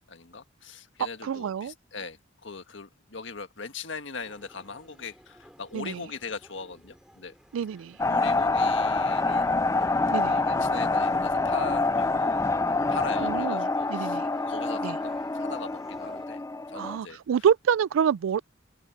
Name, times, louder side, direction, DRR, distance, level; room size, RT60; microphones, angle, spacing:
voice 1, 0.1-7.3 8.0-9.5 10.2-12.6 12.9-14.2 14.5-16.4 16.7-17.2, left 4 dB, 70° left, 1.6 m, -40 dB
voice 2, 1.2-1.7 5.7-6.0 7.5-7.9 10.1-10.4 13.2-14.3 14.8-15.0 16.7-18.4, right 7 dB, 85° right, 0.3 m, -27 dB
sound 1, 4.2-16.3, equal, 5° right, 7.2 m, -54 dB
sound 2, 8.0-17.0, left 3 dB, 15° left, 0.3 m, -26 dB
open air
head